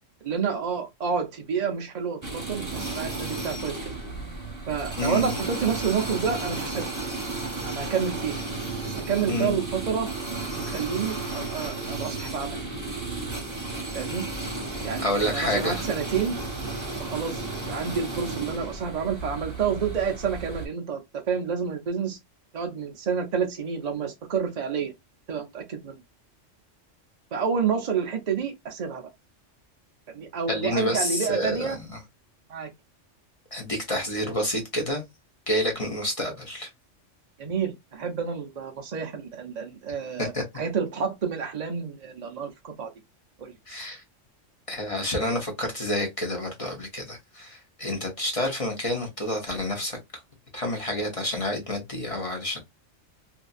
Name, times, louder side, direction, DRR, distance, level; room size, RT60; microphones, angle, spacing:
voice 1, 0.2-3.9 4.7-6.9 7.6-8.3 8.8-10.1 10.5-12.6 13.9-14.2 14.8-15.1 15.4-16.3 17.0-17.4 17.7-22.2 22.5-24.9 25.3-26.0 27.3-29.0 30.1-31.8 32.5-32.7 37.4-40.3 40.6-42.9 43.4-43.5, right 6 dB, 50° right, 0.5 m, -29 dB
sound 1, 2.2-20.7, right 3 dB, 15° right, 0.9 m, -33 dB
voice 2, 5.0-5.3 9.3-9.6 15.0-15.8 30.5-32.0 33.5-35.1 35.5-36.7 40.2-40.4 43.7-44.0 44.7-50.2 50.5-52.6, left 1 dB, 30° left, 0.8 m, -29 dB
2.7 x 2.5 x 2.3 m
omnidirectional pair, 1.3 m